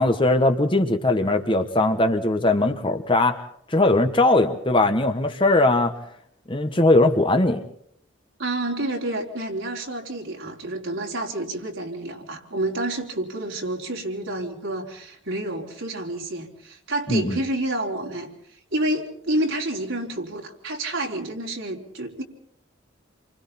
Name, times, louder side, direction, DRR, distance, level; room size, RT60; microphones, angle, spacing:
voice 1, 0.0-3.4 3.7-5.9 6.5-7.6 17.1-17.4, left 2 dB, 25° left, 7 dB, 1.3 m, -20 dB
voice 2, 8.4-18.3 18.7-22.2, right 1 dB, 80° right, -1 dB, 4.3 m, -29 dB
28.5 x 24.5 x 4.3 m, 0.66 s
head